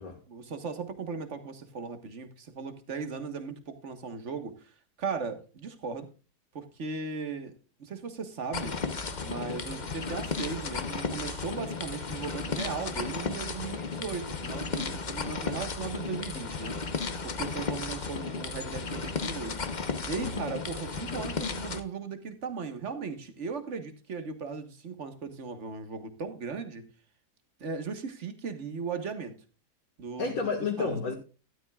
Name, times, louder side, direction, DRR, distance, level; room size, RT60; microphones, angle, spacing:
voice 1, 0.3-6.1 6.5-7.5 7.8-8.7 9.2-19.7 20.1-26.9 27.6-29.3 30.0-30.4 30.8-31.0, right 5 dB, 45° right, 1.7 m, -37 dB
sound 1, 8.5-21.8, left 4 dB, 35° left, 0.9 m, -34 dB
voice 2, 20.2-20.5 30.2-31.1, left 5 dB, 55° left, 2.2 m, -31 dB
13.0 x 12.0 x 2.4 m
omnidirectional pair, 1.8 m